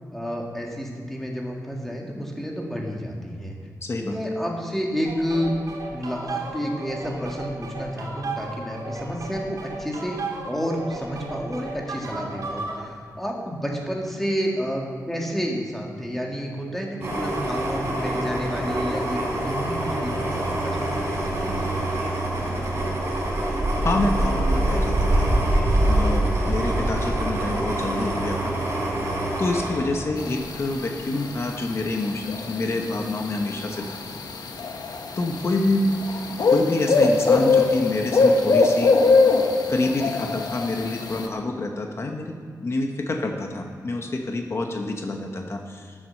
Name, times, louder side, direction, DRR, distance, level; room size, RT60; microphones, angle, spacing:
voice 1, 0.1-3.5 4.0-5.5 5.9-10.2 10.5-21.7, equal, 5° left, -1 dB, 1.9 m, -30 dB
voice 2, 3.8-4.2 23.8-25.3 25.9-28.5 29.4-34.0 35.2-35.9 36.5-38.9 39.7-45.9, left 2 dB, 40° left, 3 dB, 1.0 m, -27 dB
sound 1, 5.0-12.8, right 3 dB, 60° right, 2.5 m, -35 dB
sound 2, 17.0-30.7 31.1-31.3, right 1 dB, 40° right, 3.9 m, -25 dB
sound 3, 30.2-41.3, left 3 dB, 75° left, 1.2 m, -22 dB
14.0 x 7.8 x 6.5 m, 2.2 s
wide cardioid pair, 160°, 7 cm